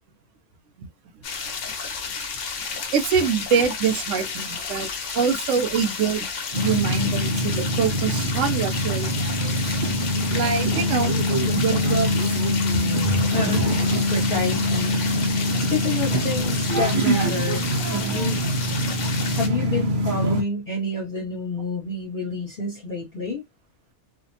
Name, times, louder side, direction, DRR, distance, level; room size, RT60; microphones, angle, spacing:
sound 1, 1.2-19.5, left 5 dB, 85° left, 1.0 m, -32 dB
voice 1, 2.7-6.3 6.6-9.8 10.3-11.3 11.6-12.4 12.7-13.3, right 6 dB, 85° right, 0.9 m, -25 dB
sound 2, 6.5-20.4, left 1 dB, 55° right, 0.7 m, -24 dB
voice 2, 13.2-13.7 14.1-15.0 15.6-18.4 19.4-23.4, left 2 dB, 45° left, 1.1 m, -28 dB
2.5 x 2.1 x 2.6 m
omnidirectional pair, 1.2 m